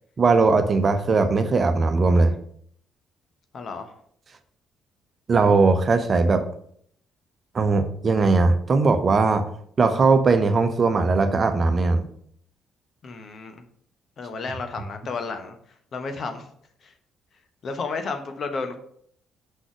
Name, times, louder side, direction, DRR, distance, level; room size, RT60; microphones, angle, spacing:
voice 1, 0.2-2.3 5.3-6.4 7.5-9.4 9.8-12.0, right 3 dB, 40° right, 8 dB, 0.8 m, -19 dB
voice 2, 3.5-3.9 13.0-13.6 14.2-15.6 15.9-16.4 16.8-16.9 17.6-18.8, left 4 dB, 50° left, 7 dB, 1.0 m, -32 dB
6.2 x 5.6 x 5.0 m, 0.65 s
figure-of-eight pair, 45°, 0 cm